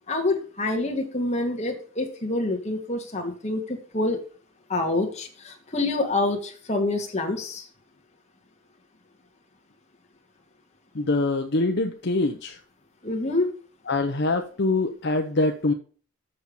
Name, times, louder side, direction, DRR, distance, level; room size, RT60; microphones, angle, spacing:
voice 1, 0.1-4.2 4.7-7.6 13.0-13.5, left 2 dB, 35° left, 2 dB, 1.9 m, -27 dB
voice 2, 10.9-12.6 13.9-15.7, left 2 dB, 55° left, 5 dB, 0.8 m, -24 dB
7.0 x 6.7 x 5.2 m, 0.41 s
head